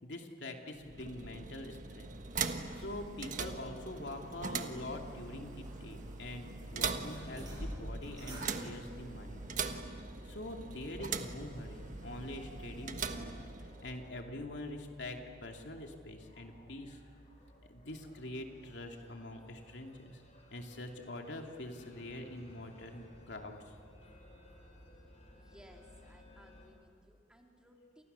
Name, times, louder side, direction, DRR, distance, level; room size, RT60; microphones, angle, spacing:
voice 1, 0.0-2.2 2.7-9.4 10.2-17.0 17.7-20.2 20.5-23.6, left 1 dB, 70° left, 3 dB, 2.7 m, -45 dB
sound 1, 0.7-14.0, right 5 dB, 45° right, 1.4 m, -41 dB
sound 2, 2.0-9.7, right 1 dB, 20° right, 7.3 m, -50 dB
sound 3, 9.0-26.7, equal, 35° left, 6.2 m, -56 dB
voice 2, 25.3-28.0, equal, 5° right, 1 dB, 2.9 m, -61 dB
29.5 x 28.5 x 6.9 m, 2.3 s
head